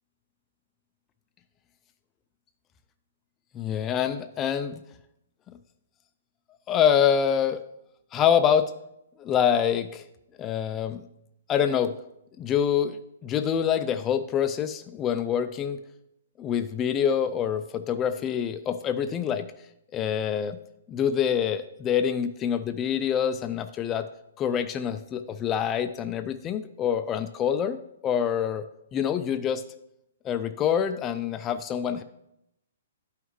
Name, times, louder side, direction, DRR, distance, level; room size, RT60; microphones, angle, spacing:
voice 1, 3.5-4.8 5.5-5.6 6.7-7.6 8.1-8.7 9.2-10.0 10.4-11.1 11.5-11.9 12.4-15.8 16.4-19.5 19.9-20.6 20.9-24.0 24.4-27.8 28.0-28.6 28.9-29.6 30.2-32.0, left 8 dB, 15° left, 9 dB, 0.3 m, -26 dB
12.0 x 5.7 x 3.1 m, 0.81 s
hypercardioid pair, 165°, 0 cm